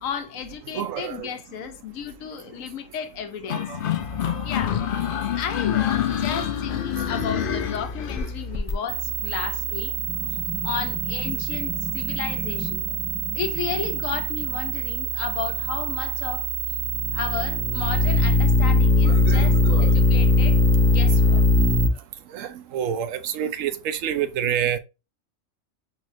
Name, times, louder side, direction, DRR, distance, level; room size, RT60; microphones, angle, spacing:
voice 1, 0.0-3.7 4.4-4.9 5.3-9.9 10.6-12.9 13.3-16.5 17.1-21.5, left 8 dB, 80° left, 1.1 m, -33 dB
voice 2, 0.7-1.3 3.5-3.8 19.1-19.9 22.3-24.8, right 9 dB, 80° right, 1.0 m, -28 dB
sound 1, 3.5-8.3, left 10 dB, 60° left, 0.6 m, -27 dB
sound 2, 4.0-21.9, left 1 dB, 15° right, 0.5 m, -23 dB
5.5 x 3.1 x 2.6 m
omnidirectional pair, 1.4 m